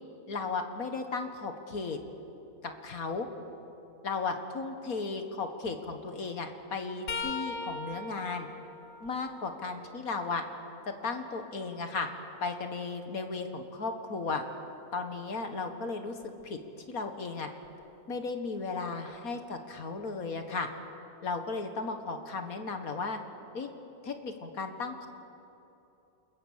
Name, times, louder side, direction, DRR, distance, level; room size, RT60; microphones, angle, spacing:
voice 1, 0.3-2.0 2.6-3.3 4.0-8.5 9.0-10.4 11.0-12.1 12.4-14.4 14.9-16.2 16.4-16.6 16.9-17.5 18.1-20.7 21.2-23.2 23.5-23.7 24.0-25.1, left 4 dB, 65° left, 6 dB, 1.9 m, -35 dB
sound 1, 7.1-10.8 11.4-13.3 16.2-16.4 17.6-17.8 19.1-19.2, left 4 dB, 90° left, 1.7 m, -42 dB
28.5 x 21.5 x 7.4 m, 2.9 s
omnidirectional pair, 1.6 m